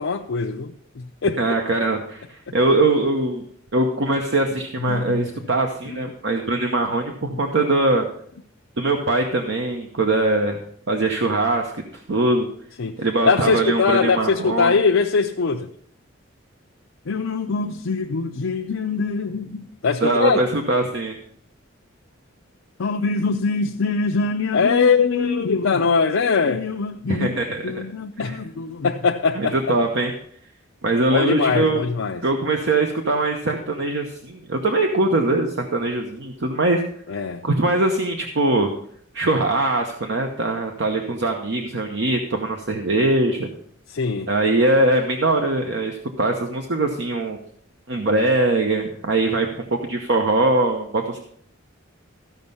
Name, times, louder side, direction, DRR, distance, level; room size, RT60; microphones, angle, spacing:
voice 1, 0.0-1.4 4.8-5.3 5.9-6.0 7.3-7.4 10.9-11.0 12.8-15.7 17.1-20.4 22.8-27.3 27.6-29.6 31.1-32.2 37.1-37.4 43.9-44.3, left 4 dB, 85° left, 0.6 m, -22 dB
voice 2, 1.4-3.4 3.7-8.1 8.8-10.6 10.9-12.5 13.0-14.7 20.0-21.2 27.1-27.8 28.2-28.4 29.4-30.1 30.8-31.8 32.2-36.8 37.4-38.7 39.1-43.5 44.3-47.4 47.9-51.2, right 2 dB, 60° right, 0.9 m, -22 dB
14.5 x 5.3 x 5.5 m
head